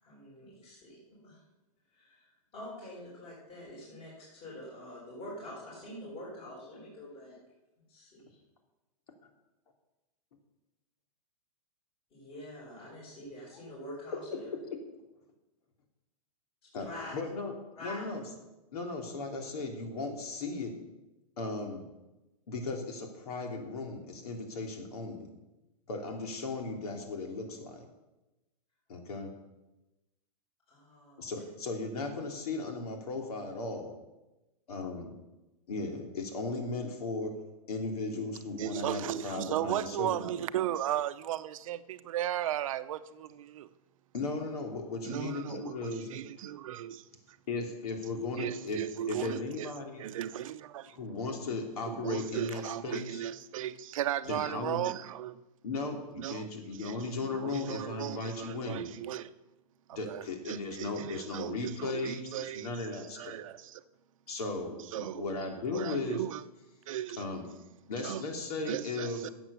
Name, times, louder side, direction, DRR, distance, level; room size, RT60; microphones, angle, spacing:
voice 1, 0.0-1.4 1.9-7.4 7.9-8.4 12.1-14.5 16.8-17.2 17.8-18.2 30.7-31.4 61.0-61.1, left 1 dB, 35° left, -8 dB, 5.3 m, -46 dB
voice 2, 17.1-17.5 17.8-18.2 18.7-20.8 21.4-21.9 22.5-25.3 25.9-27.9 28.9-29.3 31.2-33.9 34.7-35.1 35.7-37.3 37.7-40.4 44.1-46.1 47.5-48.8 49.1-50.0 50.9-53.2 54.2-54.8 55.6-58.9 59.9-63.4 64.3-66.2 67.2-67.5 67.9-69.2, left 3 dB, 75° left, 3 dB, 3.0 m, -36 dB
voice 3, 38.6-43.7 45.0-47.1 48.4-49.7 50.0-51.0 51.9-55.4 56.2-56.5 56.8-57.0 57.3-59.3 59.9-63.8 64.9-65.3 65.7-66.4 66.9-67.2 68.0-68.2 68.7-69.3, right 12 dB, 60° right, 12 dB, 0.7 m, -36 dB
12.5 x 8.0 x 6.9 m, 1.0 s
hypercardioid pair, 150°, 19 cm